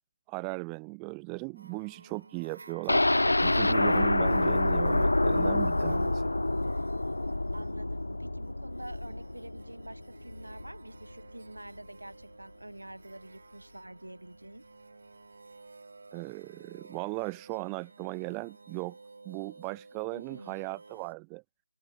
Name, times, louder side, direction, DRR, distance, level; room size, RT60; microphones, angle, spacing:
voice 1, 0.3-3.1 3.4-6.2 16.1-19.0 19.2-21.4, right 40 dB or more, 10° right, 0.3 m, -37 dB
sound 1, 1.5-21.1, right 3 dB, 50° right, 3.3 m, -54 dB
sound 2, 2.9-10.8 11.1-11.2 11.6-11.7, left 2 dB, 75° left, 0.3 m, -27 dB
voice 2, 7.5-14.6 20.1-20.5, right 1 dB, 85° right, 3.2 m, -47 dB
figure-of-eight pair, 165°, 0 cm